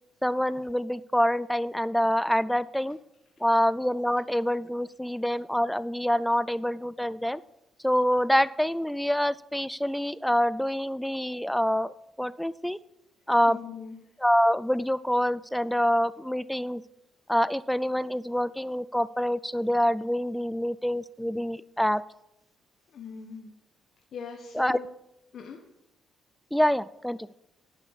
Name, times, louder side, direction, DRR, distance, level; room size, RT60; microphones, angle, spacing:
voice 1, 0.2-3.0 3.4-7.4 7.8-12.8 13.3-13.6 14.2-16.8 17.3-22.0 24.5-24.8 26.5-27.3, equal, 5° left, 18 dB, 0.4 m, -26 dB
voice 2, 13.5-14.0 22.9-23.5 24.1-24.9 25.3-25.6, left 6 dB, 60° left, 3 dB, 1.3 m, -40 dB
11.0 x 6.8 x 7.4 m, 0.87 s
cardioid pair, 90°, 0 cm